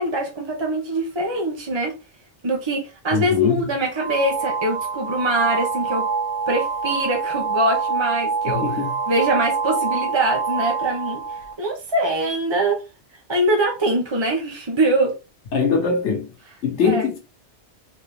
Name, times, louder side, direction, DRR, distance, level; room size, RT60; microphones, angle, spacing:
voice 1, 0.0-1.9 2.4-6.1 6.5-8.7 9.1-11.2 11.6-12.8 13.3-15.1 16.8-17.1, right 1 dB, 30° right, 0.7 m, -23 dB
voice 2, 3.1-3.7 8.5-8.9 15.5-16.3 16.6-17.2, left 5 dB, 85° left, 1.3 m, -22 dB
sound 1, 4.0-11.5, right 5 dB, 80° right, 1.2 m, -25 dB
4.0 x 2.8 x 3.3 m
omnidirectional pair, 1.1 m